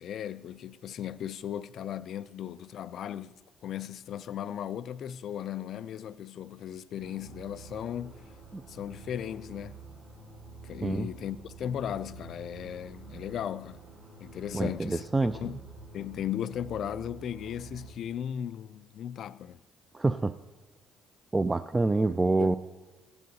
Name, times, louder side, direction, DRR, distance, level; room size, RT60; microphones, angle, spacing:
voice 1, 0.0-8.2 8.7-9.8 10.6-13.8 14.2-15.6 15.9-19.6 22.4-22.6, left 10 dB, 65° left, 0.3 m, -37 dB
sound 1, 7.0-17.9, right 3 dB, 75° right, 3.0 m, -48 dB
voice 2, 14.5-15.4 19.9-20.3 21.3-22.6, right 3 dB, 20° right, 0.3 m, -26 dB
15.0 x 12.0 x 2.8 m
supercardioid pair, 65°, 0 cm